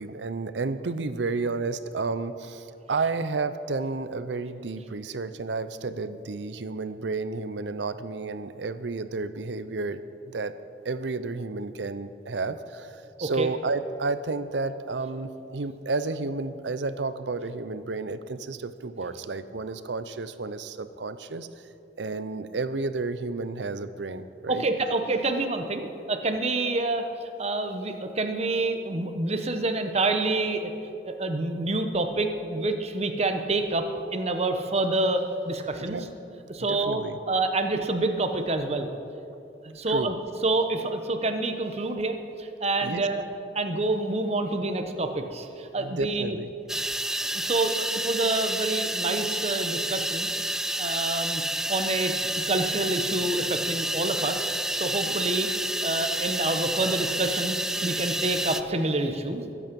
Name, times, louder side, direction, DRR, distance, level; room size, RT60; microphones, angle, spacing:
voice 1, 0.0-10.5 10.8-21.7 22.0-24.6 35.8-36.1 36.6-37.2 39.9-40.1 42.8-43.1 45.8-46.5, right 3 dB, 80° right, 13 dB, 0.7 m, -31 dB
voice 2, 24.5-30.7 31.1-36.0 36.5-37.0 37.3-38.9 39.6-40.2 40.4-43.2 43.5-46.4 47.3-50.3 50.8-51.4 51.7-52.1 52.5-54.5 54.8-55.5 55.8-59.4, right 2 dB, 35° right, 6 dB, 1.0 m, -27 dB
sound 1, 46.7-58.6, right 1 dB, 5° right, 0.3 m, -29 dB
21.5 x 8.5 x 5.4 m, 2.7 s
head